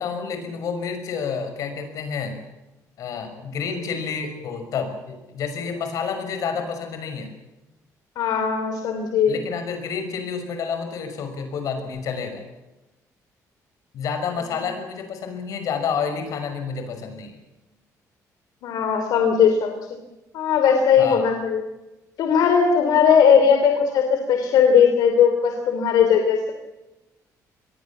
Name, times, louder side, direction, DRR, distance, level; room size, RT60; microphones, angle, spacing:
voice 1, 0.0-2.4 3.0-7.3 9.3-12.4 13.9-17.4 21.0-21.2, left 6 dB, 60° left, 6 dB, 5.9 m, -29 dB
voice 2, 8.1-9.4 18.6-19.7 20.3-21.6 22.2-26.5, left 7 dB, 80° left, 5 dB, 3.1 m, -18 dB
26.0 x 21.5 x 7.4 m, 1.0 s
cardioid pair, 175°, 7 cm